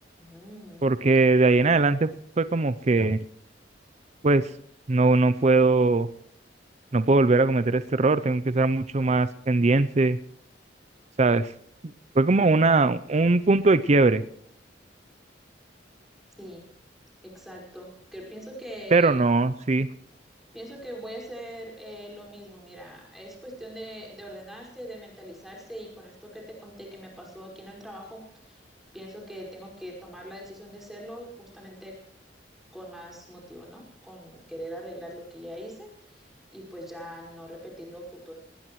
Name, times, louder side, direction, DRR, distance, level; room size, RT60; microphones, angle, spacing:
voice 1, 0.2-0.9 16.4-16.6 17.2-19.1 20.5-28.6 28.9-32.0 32.7-38.3, equal, ahead, -2 dB, 5.2 m, -42 dB
voice 2, 0.8-2.1 2.4-3.2 4.2-4.4 4.9-6.1 6.9-10.2 11.2-11.5 12.2-14.2 18.9-19.9, right 3 dB, 40° right, 13 dB, 0.5 m, -20 dB
19.5 x 19.5 x 3.1 m, 0.68 s
head